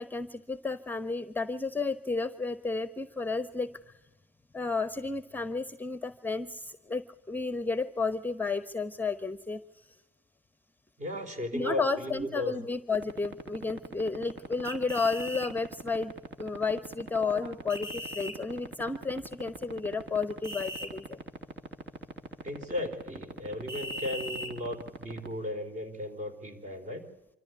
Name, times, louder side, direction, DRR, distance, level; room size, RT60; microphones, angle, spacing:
voice 1, 0.0-3.7 4.5-10.0 11.5-16.1 16.4-21.2, left 4 dB, 10° left, 13 dB, 0.9 m, -32 dB
voice 2, 11.0-12.5 17.2-17.5 22.4-27.0, left 1 dB, 35° right, 8 dB, 4.4 m, -36 dB
sound 1, 12.9-25.3, right 3 dB, 60° right, 2.7 m, -39 dB
sound 2, 14.6-15.5 17.7-18.3 20.4-20.9 23.7-24.5, equal, 15° right, 5.0 m, -38 dB
25.5 x 14.0 x 8.1 m, 0.99 s
hypercardioid pair, 75°, 20 cm